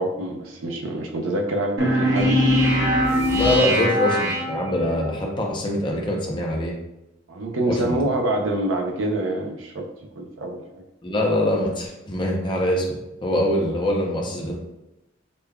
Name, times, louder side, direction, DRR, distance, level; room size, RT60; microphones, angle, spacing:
voice 1, 0.0-2.4 3.1-3.6 7.3-9.9 10.2-10.8, right 1 dB, 90° right, 2 dB, 0.6 m, -26 dB
sound 1, 1.8-5.1, equal, 60° right, 0.9 m, -21 dB
sound 2, 2.2-3.8, right 1 dB, 35° right, 0.8 m, -34 dB
voice 2, 3.3-6.7 7.6-8.0 11.0-14.5, left 1 dB, 25° left, -1 dB, 0.6 m, -24 dB
5.1 x 2.2 x 2.3 m, 0.94 s
head